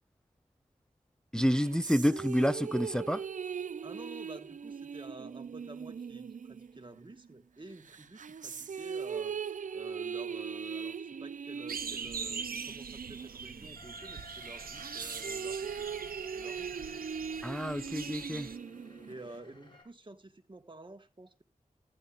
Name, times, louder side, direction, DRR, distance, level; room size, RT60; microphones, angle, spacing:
voice 1, 1.3-3.2 17.4-18.5, equal, 5° left, 0.5 m, -29 dB
sound 1, 1.4-7.3 7.8-13.9 14.3-19.4, right 6 dB, 60° right, 0.5 m, -40 dB
voice 2, 3.8-9.4 9.7-15.9 16.3-16.7 19.0-21.4, right 2 dB, 35° right, 1.5 m, -50 dB
sound 2, 11.7-18.6, right 6 dB, 85° right, 0.8 m, -42 dB
sound 3, 12.0-19.8, left 1 dB, 30° left, 5.9 m, -55 dB
15.0 x 10.0 x 2.5 m
cardioid pair, 50°, 15 cm